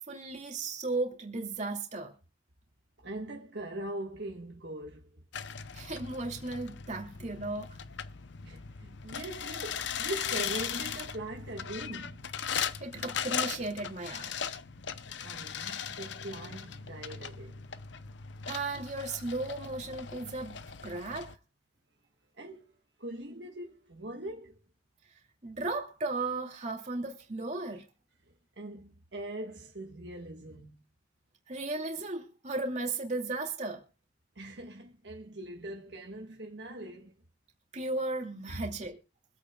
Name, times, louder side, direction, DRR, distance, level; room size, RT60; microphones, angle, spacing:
voice 1, 0.1-2.1 5.7-7.8 12.8-14.3 18.5-20.6 20.8-21.4 25.4-27.8 31.5-33.8 37.7-39.0, right 2 dB, 35° right, 2.5 m, -35 dB
voice 2, 3.0-5.2 8.4-12.3 12.9-13.2 15.2-17.6 22.4-22.6 23.0-24.6 28.6-30.8 34.3-37.1 38.5-38.6, right 1 dB, 60° right, 1.5 m, -41 dB
sound 1, 5.3-21.4, left 7 dB, 65° left, 0.7 m, -38 dB
24.5 x 8.6 x 2.3 m
head